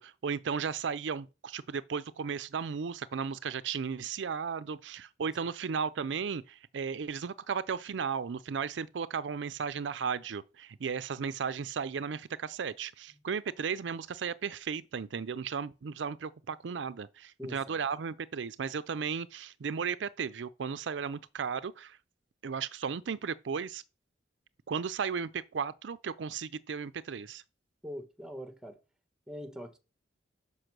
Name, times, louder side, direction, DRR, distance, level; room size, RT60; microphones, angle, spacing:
voice 1, 0.0-22.0 22.4-23.8 24.7-27.4, right 6 dB, 80° right, 0.5 m, -35 dB
voice 2, 17.4-17.8 27.8-28.8 29.3-29.8, equal, 5° right, 1.2 m, -43 dB
6.5 x 5.5 x 6.0 m
head